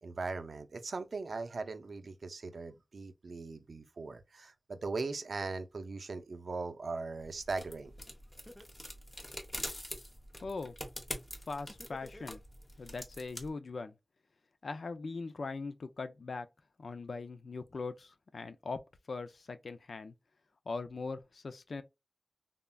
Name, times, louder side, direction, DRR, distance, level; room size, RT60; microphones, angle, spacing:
voice 1, 0.0-7.9, right 3 dB, 80° right, 0.4 m, -39 dB
sound 1, 7.2-13.5, left 1 dB, 30° left, 0.8 m, -45 dB
Laughter, 7.9-8.0 8.5-9.9 11.7-12.9, equal, 5° left, 0.6 m, -52 dB
voice 2, 10.4-10.7 11.5-12.4 12.8-13.9 14.6-16.5 16.8-18.8 19.1-20.1 20.7-21.8, left 4 dB, 80° left, 0.4 m, -40 dB
3.5 x 2.0 x 2.2 m
wide cardioid pair, 60°, 0 cm